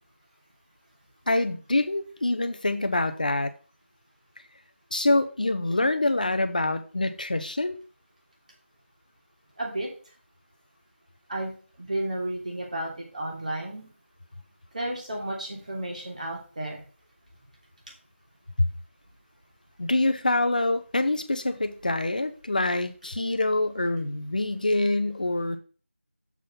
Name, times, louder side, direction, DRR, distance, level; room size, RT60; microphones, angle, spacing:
voice 1, 1.3-3.5 4.9-7.8 18.6-18.7 19.8-25.6, left 2 dB, 40° left, 0.8 m, -25 dB
voice 2, 9.6-9.9 11.3-11.5 11.8-13.9 14.7-16.8 24.8-24.9, right 1 dB, 35° right, 2.9 m, -32 dB
7.5 x 5.4 x 5.6 m
figure-of-eight pair, 175°, 7 cm